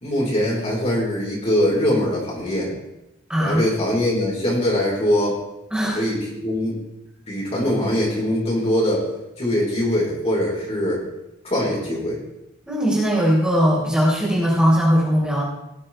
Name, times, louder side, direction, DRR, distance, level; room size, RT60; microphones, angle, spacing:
voice 1, 0.0-2.7 3.4-5.4 5.9-6.8 7.3-9.1 9.4-11.0 11.4-12.2, left 1 dB, 30° left, -4 dB, 4.4 m, -22 dB
voice 2, 3.3-3.6 5.7-6.0 12.7-15.4, equal, 5° right, -6 dB, 3.6 m, -19 dB
18.5 x 7.6 x 4.4 m, 0.88 s
head